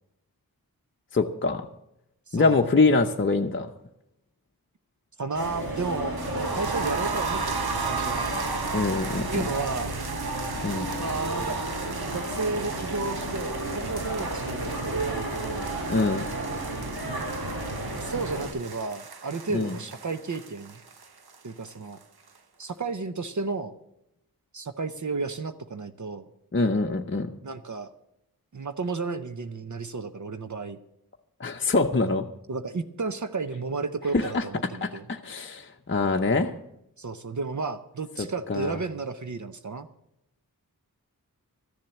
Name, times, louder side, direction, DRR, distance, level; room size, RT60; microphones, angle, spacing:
voice 1, 1.1-1.7 2.3-3.7 8.7-9.5 10.6-10.9 15.9-16.2 19.5-19.8 26.5-27.3 31.4-32.3 34.1-34.4 34.8-36.5 38.5-38.8, left 3 dB, 35° left, 2 dB, 0.7 m, -24 dB
voice 2, 2.3-2.7 5.2-8.3 9.2-10.0 11.0-11.6 12.1-15.8 17.8-20.8 21.4-22.0 22.6-23.7 24.5-26.3 27.4-27.9 28.5-30.8 32.5-35.0 37.0-39.9, right 3 dB, 50° right, 10 dB, 0.8 m, -33 dB
sound 1, 5.3-18.5, right 1 dB, 70° right, 2.9 m, -32 dB
sound 2, 6.2-22.0 22.3-22.4 22.7-22.8, right 5 dB, 85° right, 1.1 m, -36 dB
13.5 x 7.4 x 8.0 m, 0.83 s
wide cardioid pair, 80°, 37 cm